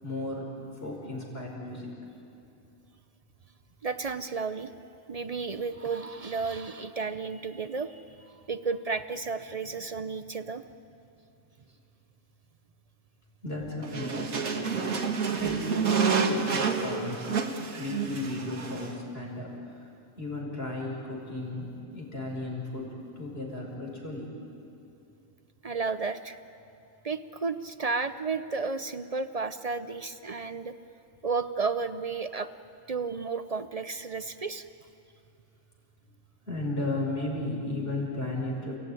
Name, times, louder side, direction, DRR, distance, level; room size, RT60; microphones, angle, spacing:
voice 1, 0.0-0.5 0.8-1.9 13.4-15.0 15.4-17.2 17.8-19.9 20.2-22.9 23.2-24.4 36.5-38.8, left 2 dB, 45° left, -1 dB, 5.6 m, -35 dB
voice 2, 3.8-4.7 5.1-10.6 25.6-26.4 27.0-30.7 31.2-32.5 32.9-34.7, right 4 dB, 45° right, 11 dB, 0.4 m, -32 dB
sound 1, 13.8-19.0, right 5 dB, 75° right, 2.1 m, -29 dB
30.0 x 17.0 x 9.9 m, 2.7 s
omnidirectional pair, 1.5 m